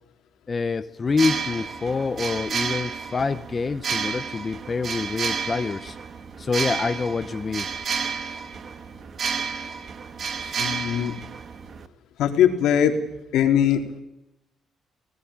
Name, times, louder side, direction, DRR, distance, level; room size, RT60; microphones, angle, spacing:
voice 1, 0.5-6.0 6.4-7.7 10.4-10.7, left 4 dB, 30° left, 11 dB, 1.0 m, -26 dB
sound 1, 1.1-11.9, right 6 dB, 45° right, 1.9 m, -31 dB
voice 2, 10.6-11.1 12.2-13.0 13.3-13.8, left 9 dB, 85° left, 5 dB, 3.6 m, -20 dB
24.5 x 19.0 x 8.8 m, 0.88 s
cardioid pair, 110°, 0 cm